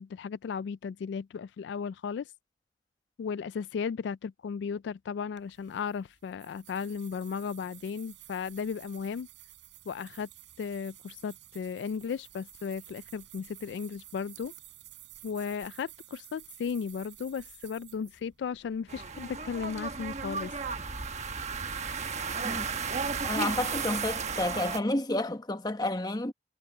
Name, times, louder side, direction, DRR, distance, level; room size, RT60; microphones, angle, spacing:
voice 1, 0.0-2.3 3.2-9.3 9.9-10.3 10.6-14.5 15.2-20.5, left 6 dB, 75° left, 0.3 m, -35 dB
sound 1, 5.4-19.7, right 14 dB, 85° right, 4.6 m, -53 dB
sound 2, 18.9-24.8, right 5 dB, 40° right, 1.3 m, -34 dB
voice 2, 23.2-26.3, left 1 dB, 20° left, 1.1 m, -30 dB
head